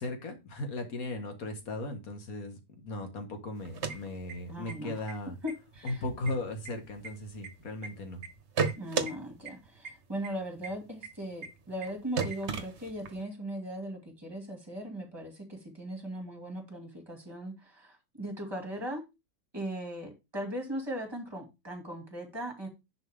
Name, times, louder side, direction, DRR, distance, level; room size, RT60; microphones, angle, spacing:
voice 1, 0.0-5.4 5.8-8.2, left 2 dB, 50° left, 2.0 m, -37 dB
sound 1, 3.6-4.7 5.1-5.2 5.5-5.9 6.3-7.9 8.2-9.1 9.5-9.6 9.8-9.9 10.2-10.3 10.6-10.7 11.0-11.1 11.4-11.5 11.8-11.9 12.2-13.2, right 5 dB, 45° right, 1.2 m, -33 dB
voice 2, 4.5-4.9 5.4-6.0 8.8-19.0 19.5-22.7, equal, 15° right, 2.3 m, -38 dB
10.5 x 5.2 x 3.6 m
omnidirectional pair, 1.9 m